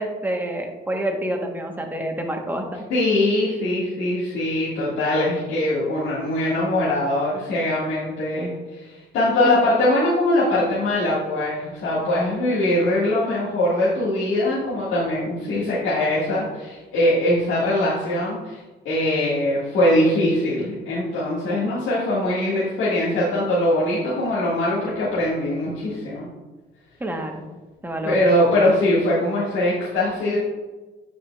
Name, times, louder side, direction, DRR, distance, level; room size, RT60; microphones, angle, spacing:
voice 1, 0.0-2.9 27.0-27.5 27.8-28.3 28.5-28.8, right 1 dB, 10° right, 2 dB, 1.0 m, -28 dB
voice 2, 2.9-18.6 18.9-26.3 28.0-30.4, left 1 dB, 80° left, -10 dB, 1.7 m, -22 dB
8.8 x 4.9 x 2.3 m, 1.2 s
cardioid pair, 90°, 20 cm